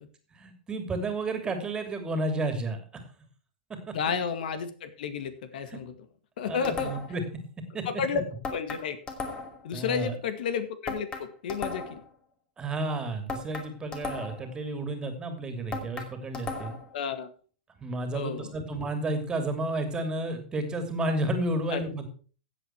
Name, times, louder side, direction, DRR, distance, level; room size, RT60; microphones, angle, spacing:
voice 1, 0.3-2.8 3.9-4.0 5.7-5.8 6.4-7.2 7.7-8.2 9.7-10.2 12.6-16.7 17.8-22.1, right 2 dB, 15° right, 7 dB, 2.8 m, -31 dB
voice 2, 3.9-5.9 6.4-6.9 7.9-8.2 8.5-9.0 9.6-12.0 16.9-17.3 18.1-18.5 21.7-21.8, left 6 dB, 65° left, 10 dB, 2.0 m, -31 dB
sound 1, 6.6-7.2 8.4-9.7 10.9-12.1 13.3-14.5 15.7-16.9, left 4 dB, 20° left, 2.5 m, -36 dB
15.5 x 8.0 x 4.6 m, 0.38 s
hypercardioid pair, 135°, 5 cm